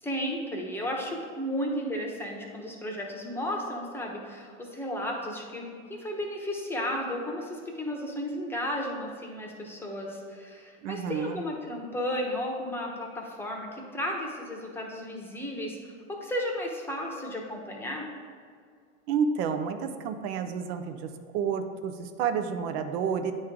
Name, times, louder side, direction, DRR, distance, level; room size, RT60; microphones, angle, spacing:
voice 1, 0.0-18.1, equal, 5° left, -1 dB, 0.9 m, -34 dB
voice 2, 10.8-11.4 19.1-21.1 21.3-23.3, right 6 dB, 50° right, 7 dB, 0.6 m, -30 dB
9.2 x 3.2 x 3.6 m, 2.1 s
hypercardioid pair, 100°, 40 cm